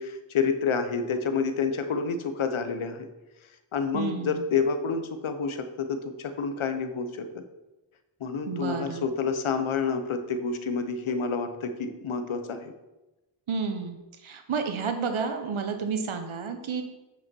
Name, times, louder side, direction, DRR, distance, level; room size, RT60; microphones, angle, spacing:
voice 1, 0.0-3.1 3.7-7.4 8.2-12.7, left 5 dB, 70° left, 8 dB, 1.0 m, -29 dB
voice 2, 3.9-4.4 8.5-9.1 13.5-14.0 14.2-16.8, right 5 dB, 70° right, 6 dB, 1.2 m, -30 dB
8.5 x 6.0 x 4.5 m, 1.0 s
cardioid pair, 70°, 50 cm